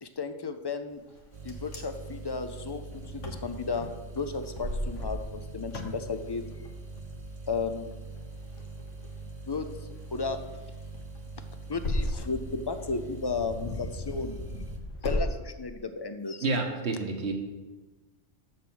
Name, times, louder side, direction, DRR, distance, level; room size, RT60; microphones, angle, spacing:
voice 1, 0.0-1.0 1.4-2.8 3.1-3.9 4.1-6.4 7.5-7.9 9.5-9.7 10.1-10.4 11.7-14.4 15.0-16.4, left 4 dB, 35° left, 9 dB, 0.4 m, -33 dB
Wind, 1.1-15.3, left 1 dB, 90° left, 1.7 m, -38 dB
sound 1, 1.3-14.8, right 2 dB, 40° right, 1.0 m, -41 dB
voice 2, 16.4-17.3, right 3 dB, 65° right, 3 dB, 1.5 m, -29 dB
7.4 x 7.1 x 6.3 m, 1.2 s
omnidirectional pair, 1.2 m